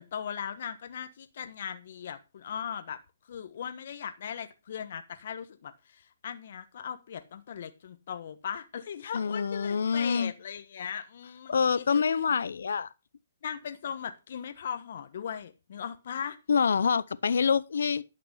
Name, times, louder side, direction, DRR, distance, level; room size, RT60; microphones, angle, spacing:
voice 1, 0.0-3.0 3.3-12.0 13.4-16.4, left 8 dB, 55° left, 1.2 m, -38 dB
voice 2, 9.1-10.3 11.5-12.9 16.5-18.0, left 6 dB, 75° left, 0.7 m, -26 dB
11.5 x 5.9 x 5.6 m
hypercardioid pair, 140°, 0 cm